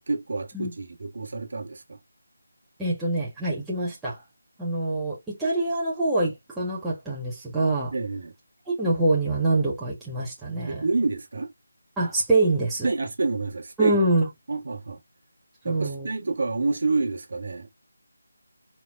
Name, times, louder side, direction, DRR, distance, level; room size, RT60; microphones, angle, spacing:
voice 1, 0.0-2.0 7.9-8.3 10.7-11.5 12.8-14.0 14.5-15.0 15.6-17.7, right 3 dB, 55° right, 1.4 m, -28 dB
voice 2, 2.8-4.2 4.6-7.9 8.7-10.8 12.0-12.9 13.8-14.2 15.6-16.1, right 2 dB, 5° right, 1.4 m, -25 dB
4.5 x 4.0 x 2.5 m
figure-of-eight pair, 165°, 0 cm